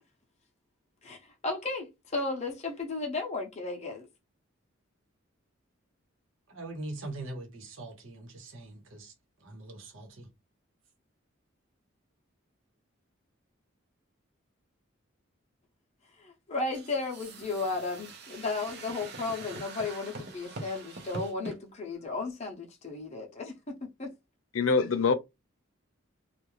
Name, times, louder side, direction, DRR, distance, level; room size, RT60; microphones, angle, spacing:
voice 1, 1.0-4.1 16.2-24.1, left 3 dB, 35° left, 0.6 m, -34 dB
voice 2, 6.5-9.1 9.4-10.3, right 2 dB, 75° right, 1.0 m, -42 dB
sound 1, 16.7-21.6, right 3 dB, 55° right, 0.7 m, -43 dB
voice 3, 24.5-25.1, left 4 dB, 90° left, 0.5 m, -24 dB
2.5 x 2.3 x 3.0 m
head